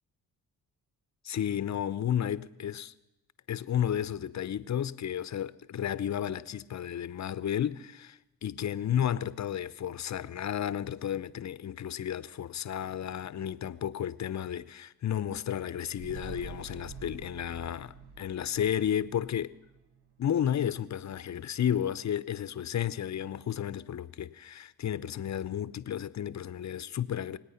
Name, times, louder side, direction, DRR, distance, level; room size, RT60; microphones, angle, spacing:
voice 1, 1.2-2.9 3.5-19.5 20.2-27.4, left 10 dB, 45° left, 0.7 m, -32 dB
sound 1, 15.9-20.5 20.8-20.9, right 4 dB, 80° right, 1.4 m, -47 dB
24.5 x 9.0 x 5.8 m
supercardioid pair, 50°, 39 cm